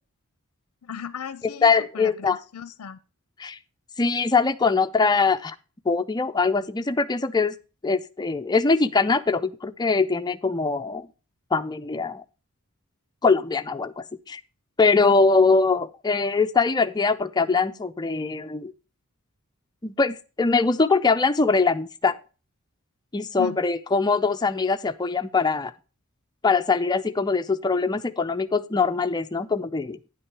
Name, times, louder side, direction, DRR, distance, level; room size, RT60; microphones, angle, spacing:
voice 1, 0.8-3.0 23.4-23.6, left 7 dB, 75° left, 15 dB, 0.5 m, -36 dB
voice 2, 1.6-2.4 3.4-3.6 4.0-5.6 5.9-7.6 7.8-11.1 11.5-12.2 13.2-14.4 14.8-18.7 19.8-22.2 23.1-25.7 26.4-30.0, left 4 dB, 20° left, 9 dB, 0.4 m, -22 dB
9.8 x 5.9 x 4.6 m, 0.34 s
head